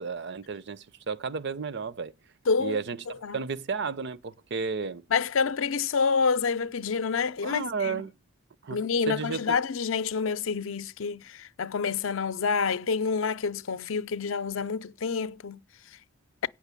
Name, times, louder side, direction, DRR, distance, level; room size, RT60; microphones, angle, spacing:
voice 1, 0.0-2.1 2.6-5.0 7.4-8.1 8.6-9.6, right 5 dB, 55° right, 0.6 m, -33 dB
voice 2, 2.5-2.8 3.2-3.4 5.1-8.0 8.7-15.6, left 5 dB, 65° left, 0.5 m, -28 dB
8.9 x 6.0 x 8.2 m
head